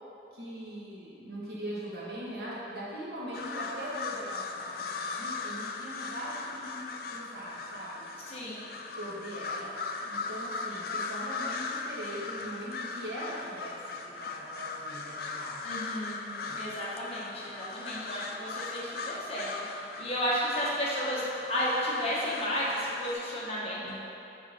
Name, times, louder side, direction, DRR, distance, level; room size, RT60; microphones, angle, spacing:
voice 1, 0.3-8.1 9.0-9.7 10.0-13.8 14.0-15.7 16.4-16.7 23.8-23.9, right 1 dB, 60° right, -7 dB, 1.4 m, -41 dB
sound 1, 3.3-23.1, left 4 dB, 55° left, 0.3 m, -38 dB
voice 2, 8.3-8.6 15.6-23.9, equal, 35° left, -7 dB, 1.2 m, -33 dB
6.4 x 3.6 x 4.8 m, 2.8 s
head